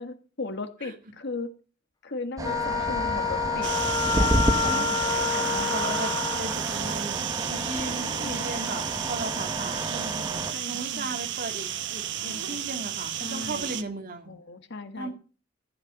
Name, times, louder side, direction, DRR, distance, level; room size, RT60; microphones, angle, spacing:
voice 1, 0.0-1.5 2.0-3.7 4.2-4.3 4.6-6.0 6.8-7.1 7.7-8.4 10.2-11.2 12.2-12.8 13.2-13.7 14.3-15.1, left 3 dB, 60° left, 8 dB, 1.6 m, -37 dB
Wind instrument woodwind instrument, 2.4-6.6, left 6 dB, 20° left, 0.9 m, -28 dB
sound 1, 2.4-10.5, right 1 dB, 20° right, 1.6 m, -31 dB
sound 2, 3.6-13.8, right 10 dB, 60° right, 1.1 m, -32 dB
voice 2, 4.6-4.9 5.7-10.2 10.7-14.3 15.0-15.1, right 2 dB, 45° right, 4 dB, 2.4 m, -36 dB
14.0 x 8.9 x 6.5 m, 0.38 s
head